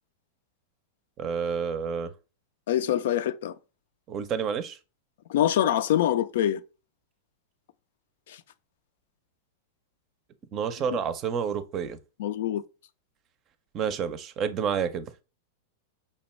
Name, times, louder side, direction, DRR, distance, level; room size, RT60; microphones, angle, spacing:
voice 1, 1.2-2.1 4.1-4.8 10.5-12.0 13.7-15.1, right 7 dB, 35° right, 0.5 m, -29 dB
voice 2, 2.7-3.5 5.3-6.6 8.3-8.4 12.2-12.6, left 11 dB, 65° left, 0.4 m, -24 dB
5.2 x 2.2 x 3.1 m
hypercardioid pair, 100°, 0 cm